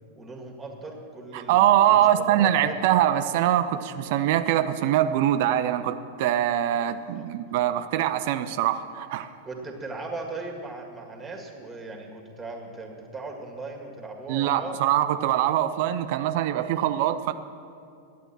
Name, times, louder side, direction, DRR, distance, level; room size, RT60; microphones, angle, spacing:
voice 1, 0.2-2.8 7.1-7.3 9.4-14.8, right 3 dB, 10° right, 2 dB, 1.8 m, -38 dB
voice 2, 1.3-9.3 14.3-17.3, right 11 dB, 50° right, 11 dB, 0.4 m, -23 dB
11.0 x 8.1 x 7.3 m, 2.4 s
figure-of-eight pair, 90°, 0 cm